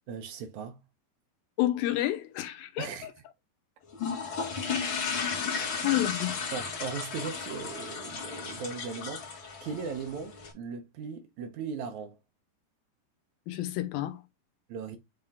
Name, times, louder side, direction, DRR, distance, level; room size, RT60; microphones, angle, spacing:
voice 1, 0.1-0.8 2.8-3.1 5.6-6.0 6.5-9.3 9.6-12.2 14.7-15.0, right 5 dB, 75° right, 1.8 m, -38 dB
voice 2, 1.6-2.9 5.5-6.3 13.5-14.2, left 14 dB, 85° left, 2.7 m, -29 dB
sound 1, 3.9-10.5, left 5 dB, 40° left, 2.4 m, -34 dB
7.5 x 3.6 x 3.6 m
omnidirectional pair, 4.1 m